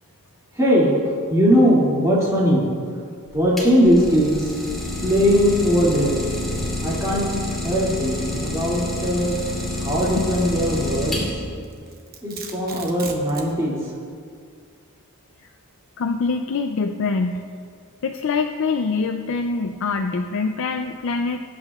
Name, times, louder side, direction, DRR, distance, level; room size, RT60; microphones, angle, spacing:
voice 1, 0.5-2.7 3.3-4.5 5.0-6.2 6.8-7.3 7.6-9.4 9.8-11.2 12.2-13.9, equal, 15° right, -6 dB, 2.3 m, -19 dB
Idling, 3.3-11.6, left 1 dB, ahead, 2.8 m, -28 dB
Domestic sounds home sounds, 11.6-13.6, right 5 dB, 45° right, 1.0 m, -37 dB
voice 2, 16.0-17.4 18.0-21.4, left 4 dB, 60° left, 5 dB, 0.4 m, -24 dB
19.0 x 8.7 x 2.4 m, 2.2 s
head